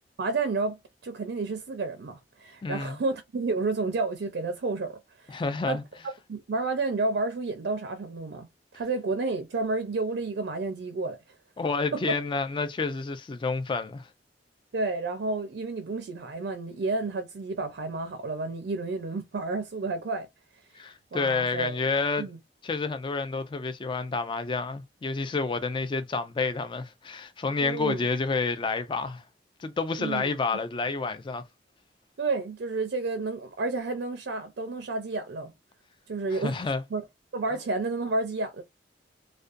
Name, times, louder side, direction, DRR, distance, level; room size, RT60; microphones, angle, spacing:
voice 1, 0.2-5.4 5.7-5.8 6.3-8.5 8.7-11.2 11.9-12.0 14.7-20.3 20.7-20.8 21.1-21.8 22.2-22.4 27.6-28.0 30.0-30.3 32.2-35.5 36.1-37.0 37.3-38.6, right 3 dB, 65° right, 0.4 m, -31 dB
voice 2, 2.6-3.0 5.3-5.8 11.6-14.1 20.7-22.3 22.6-29.2 29.6-31.4 36.3-36.8, left 4 dB, 25° left, 0.3 m, -29 dB
2.4 x 2.2 x 2.4 m
head